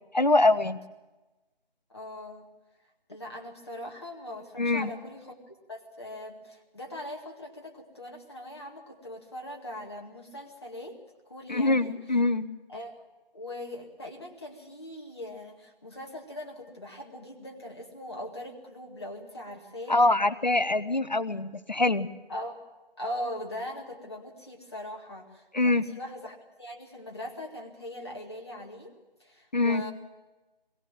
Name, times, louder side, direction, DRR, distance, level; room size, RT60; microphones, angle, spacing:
voice 1, 0.1-0.8 4.6-4.9 11.5-12.5 19.9-22.1 25.5-25.8 29.5-29.8, left 2 dB, 50° left, 14 dB, 0.8 m, -24 dB
voice 2, 1.9-2.5 3.1-5.4 5.7-11.0 11.3-11.9 12.7-13.0 13.3-20.0 22.3-22.6 23.0-28.9 29.2-29.9, left 1 dB, 25° left, 0 dB, 2.1 m, -40 dB
22.0 x 16.5 x 7.6 m, 1.1 s
figure-of-eight pair, 165°, 29 cm